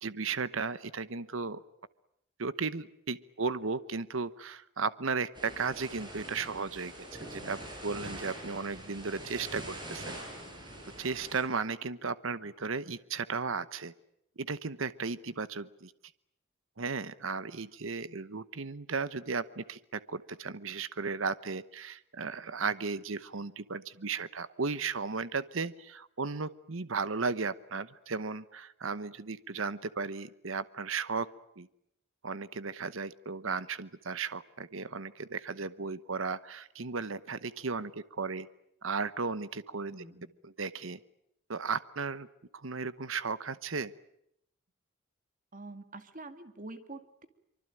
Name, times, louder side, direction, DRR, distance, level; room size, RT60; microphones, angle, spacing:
voice 1, 0.0-1.6 2.4-10.2 11.0-13.9 14.4-15.9 16.8-31.3 31.6-31.7 32.2-38.5 38.8-39.9 40.6-41.0 41.5-42.3 42.5-43.9, right 4 dB, 65° right, 15 dB, 1.0 m, -35 dB
sound 1, 5.3-11.4, right 1 dB, 20° right, 7.9 m, -44 dB
voice 2, 39.9-40.3 45.5-47.3, right 2 dB, 40° right, 9 dB, 2.2 m, -46 dB
25.0 x 24.5 x 9.1 m, 0.77 s
head